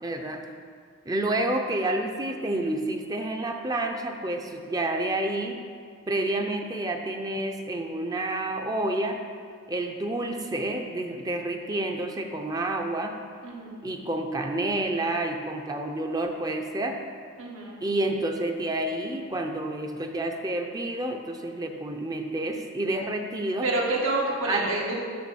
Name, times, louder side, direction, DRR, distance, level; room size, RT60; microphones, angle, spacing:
voice 1, 0.0-0.5 1.1-5.6 6.1-9.2 9.7-13.2 13.8-17.0 17.8-23.7 24.5-24.7, right 1 dB, 20° right, 4 dB, 0.6 m, -29 dB
voice 2, 13.4-13.8 17.4-17.8 23.6-24.9, right 2 dB, 85° right, -3 dB, 1.8 m, -28 dB
7.0 x 6.6 x 6.2 m, 2.1 s
head